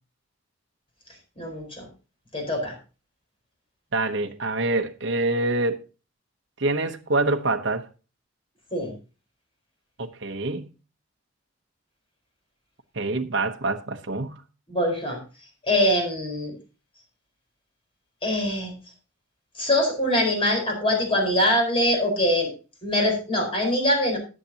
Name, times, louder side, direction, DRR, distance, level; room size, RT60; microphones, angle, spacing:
voice 1, 1.4-1.9 2.3-2.7 8.7-8.9 14.7-15.2 15.7-16.5 18.2-18.7 19.6-22.5 22.8-24.2, left 1 dB, 25° left, 4.5 m, -23 dB
voice 2, 3.9-5.8 6.6-7.9 10.0-10.7 12.9-14.4, right 2 dB, 65° right, 0.9 m, -26 dB
18.5 x 7.4 x 2.8 m
head